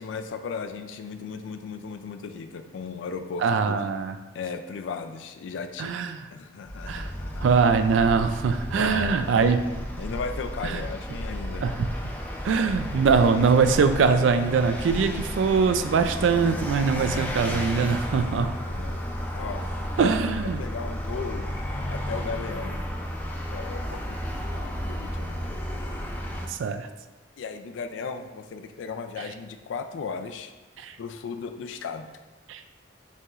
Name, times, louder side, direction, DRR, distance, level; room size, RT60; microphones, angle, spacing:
voice 1, 0.0-3.9 4.3-6.0 6.3-7.5 8.7-11.7 18.6-20.1 20.6-21.5 21.9-22.8 23.5-25.6 27.4-30.5 31.0-32.1, left 5 dB, 80° left, 9 dB, 0.3 m, -36 dB
voice 2, 3.4-4.1 5.8-6.2 6.9-7.1 7.4-9.6 10.7-10.8 11.6-11.7 12.4-18.5 20.0-20.6 26.5-26.9 30.8-30.9 32.5-32.6, right 5 dB, 80° right, 9 dB, 0.3 m, -22 dB
Vehicle, 6.7-26.5, equal, 10° left, 0.4 m, -33 dB
5.5 x 3.0 x 2.4 m, 1.2 s
head